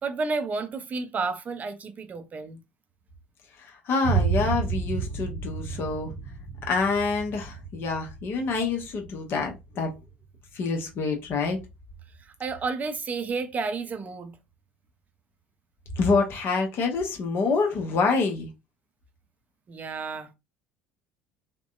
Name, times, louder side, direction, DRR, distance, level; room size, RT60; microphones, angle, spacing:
voice 1, 0.0-2.6 12.2-14.4 19.7-20.3, right 4 dB, 30° right, 0.5 m, -31 dB
voice 2, 3.6-6.1 6.7-9.9 10.5-11.6 16.0-18.5, left 4 dB, 45° left, 0.8 m, -26 dB
Boom, 4.0-11.9, right 6 dB, 75° left, 0.7 m, -32 dB
2.7 x 2.1 x 2.3 m
figure-of-eight pair, 60°, 6 cm